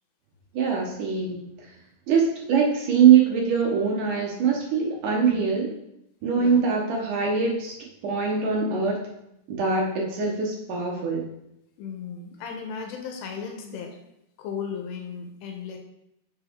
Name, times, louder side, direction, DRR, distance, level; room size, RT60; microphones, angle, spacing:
voice 1, 0.5-1.7 2.1-5.7 6.2-7.8 8.0-9.0 9.5-11.3, right 6 dB, 70° right, -1 dB, 2.1 m, -22 dB
voice 2, 11.8-14.0 14.4-15.8, left 6 dB, 90° left, 4 dB, 2.9 m, -35 dB
7.1 x 6.2 x 3.5 m, 0.82 s
omnidirectional pair, 4.9 m